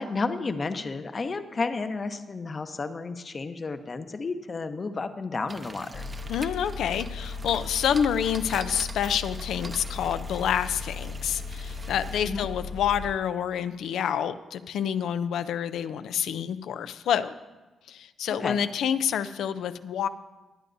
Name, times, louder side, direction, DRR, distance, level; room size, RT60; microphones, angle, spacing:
voice 1, 0.0-6.0 12.2-12.5 18.4-18.6, left 4 dB, 40° left, 9 dB, 0.8 m, -32 dB
sound 1, 5.5-12.2, right 3 dB, 30° right, 0.7 m, -44 dB
sound 2, 5.9-13.1, left 4 dB, 70° left, 1.0 m, -37 dB
voice 2, 6.3-17.4 17.9-20.1, left 9 dB, 85° left, 12 dB, 0.5 m, -28 dB
20.0 x 9.2 x 2.6 m, 1.2 s
cardioid pair, 80°, 0 cm